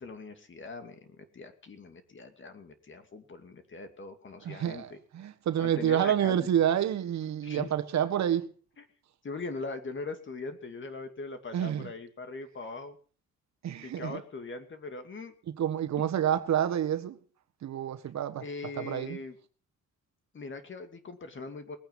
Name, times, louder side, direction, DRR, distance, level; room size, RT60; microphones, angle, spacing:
voice 1, 0.0-5.0 5.6-6.5 7.4-7.7 8.8-8.9 9.2-13.0 13.8-15.3 18.4-19.4 20.3-21.8, left 3 dB, 40° left, 2.5 m, -41 dB
voice 2, 4.4-8.5 11.5-11.9 13.6-14.2 15.6-17.2 17.6-18.4 18.7-19.2, right 10 dB, 65° right, 1.5 m, -28 dB
20.0 x 9.1 x 5.5 m
cardioid pair, 90°, 30 cm